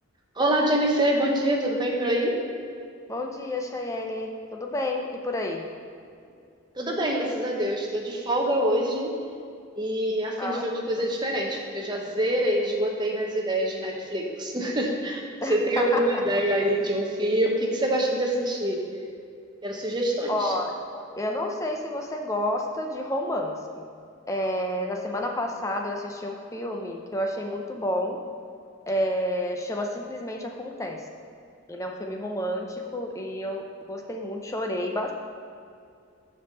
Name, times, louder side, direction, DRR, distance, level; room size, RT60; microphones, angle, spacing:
voice 1, 0.4-2.4 6.8-9.1 9.8-15.2 15.5-18.8 19.6-20.5, right 1 dB, 20° right, 0 dB, 1.0 m, -25 dB
voice 2, 3.1-5.7 10.4-10.7 11.0-11.1 15.4-16.2 20.3-23.9 24.3-28.2 28.9-31.0 31.7-35.1, left 1 dB, 15° left, 2 dB, 0.6 m, -30 dB
6.9 x 5.4 x 6.6 m, 2.4 s
head